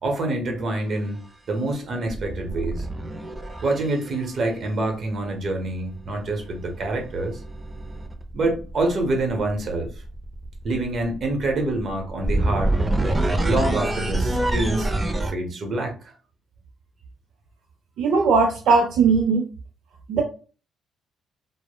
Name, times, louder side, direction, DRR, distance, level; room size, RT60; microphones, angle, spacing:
voice 1, 0.0-2.9 3.6-7.4 8.3-9.9 10.6-12.8 13.4-14.9 15.3-15.9, right 2 dB, 55° right, 0.9 m, -26 dB
sound 1, 0.6-0.8 2.1-4.2 6.0-15.3, right 1 dB, 20° right, 0.5 m, -27 dB
voice 2, 18.0-19.4 20.1-20.2, right 4 dB, 75° right, 0.5 m, -18 dB
3.0 x 2.0 x 2.2 m
cardioid pair, 90°, 0 cm